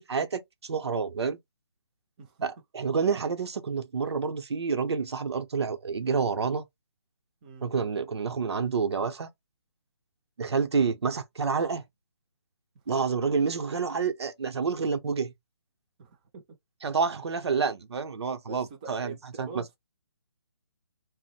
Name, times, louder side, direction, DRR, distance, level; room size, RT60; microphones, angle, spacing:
voice 1, 0.1-1.4 2.4-6.7 7.6-9.3 10.4-11.8 12.9-15.3 16.8-19.6, right 5 dB, 85° right, 0.7 m, -28 dB
voice 2, 16.0-16.6 18.5-19.8, right 5 dB, 20° right, 0.4 m, -44 dB
2.5 x 2.0 x 3.9 m
hypercardioid pair, 165°, 14 cm